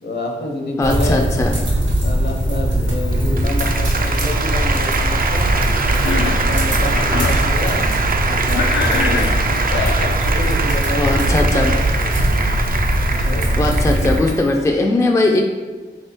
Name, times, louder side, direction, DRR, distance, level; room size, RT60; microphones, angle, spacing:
voice 1, 0.0-1.4 2.0-5.5 6.2-9.4 10.1-11.8 13.0-13.6, left 2 dB, 65° left, 1 dB, 0.9 m, -28 dB
voice 2, 0.8-1.5 11.0-11.7 13.5-15.4, left 2 dB, 15° left, 1 dB, 0.4 m, -18 dB
sound 1, 0.8-14.2, right 1 dB, 85° right, 1.3 m, -20 dB
Applause, 3.0-14.5, right 4 dB, 50° right, 0.4 m, -23 dB
Cough, 5.9-6.5 6.9-7.4 8.5-10.2, left 4 dB, 85° left, 0.4 m, -24 dB
3.6 x 3.4 x 4.3 m, 1.3 s
wide cardioid pair, 105°, 19 cm